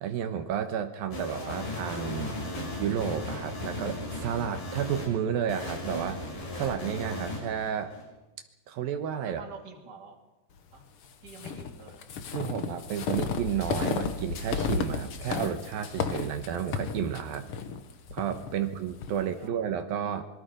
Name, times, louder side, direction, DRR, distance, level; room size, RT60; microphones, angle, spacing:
voice 1, 0.0-2.4 2.8-6.2 6.6-7.9 8.7-9.4 12.3-17.5 18.1-20.2, right 8 dB, 80° right, 7 dB, 3.0 m, -31 dB
sound 1, 1.1-5.1 5.5-8.0, left 1 dB, 75° left, 7.7 m, -36 dB
voice 2, 9.2-10.2 10.7-10.9 11.2-12.0 18.5-18.6 19.4-19.6, right 5 dB, 30° right, 2 dB, 2.8 m, -47 dB
sound 2, 11.3-19.2, left 5 dB, 60° left, 1.5 m, -33 dB
26.0 x 23.0 x 5.1 m, 1.1 s
omnidirectional pair, 4.2 m